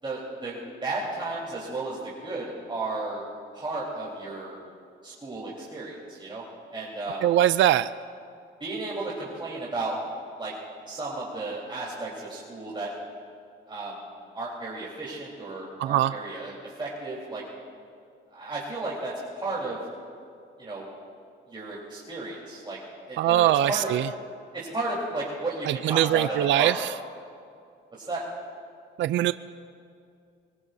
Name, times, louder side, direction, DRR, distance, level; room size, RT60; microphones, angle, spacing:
voice 1, 0.0-3.2 3.5-4.6 5.0-6.4 6.7-7.2 8.6-10.0 10.4-10.5 10.9-12.9 13.7-14.0 14.3-17.4 18.3-19.8 20.6-20.9 21.5-22.8 23.1-23.9 24.5-26.7 28.0-28.2, right 2 dB, 25° right, -6 dB, 4.0 m, -33 dB
voice 2, 7.2-7.9 15.8-16.1 23.2-24.1 25.7-26.9 29.0-29.3, right 13 dB, 70° right, 13 dB, 0.4 m, -22 dB
23.5 x 21.0 x 2.7 m, 2.4 s
cardioid pair, 90°, 20 cm